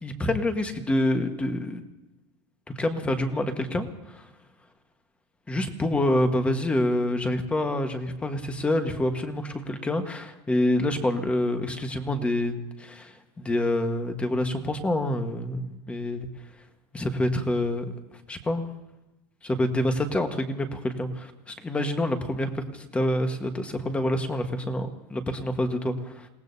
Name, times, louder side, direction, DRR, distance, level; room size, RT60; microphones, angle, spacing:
voice 1, 0.0-1.8 2.8-4.3 5.5-16.3 16.9-17.9 18.3-18.6 19.4-26.3, left 1 dB, 10° left, 6 dB, 1.3 m, -27 dB
29.0 x 18.5 x 2.7 m, 1.0 s
supercardioid pair, 160°, 13 cm